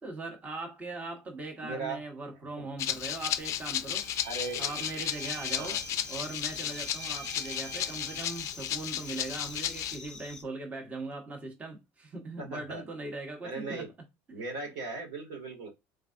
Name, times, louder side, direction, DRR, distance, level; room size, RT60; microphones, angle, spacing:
voice 1, 0.0-4.1 4.6-5.8 6.1-13.9, right 3 dB, 20° right, 1.0 m, -40 dB
voice 2, 1.6-2.0 2.6-2.7 4.2-4.9 5.5-5.8 12.4-12.8 13.4-13.9 14.3-15.7, right 3 dB, 75° right, 1.8 m, -38 dB
Rattle (instrument), 2.8-10.0, left 11 dB, 45° left, 0.4 m, -34 dB
Bowed string instrument, 3.9-8.6, right 7 dB, 45° right, 0.8 m, -46 dB
sound 1, 5.1-10.4, left 3 dB, 10° left, 0.8 m, -46 dB
3.5 x 3.2 x 2.5 m
supercardioid pair, 125°, 7 cm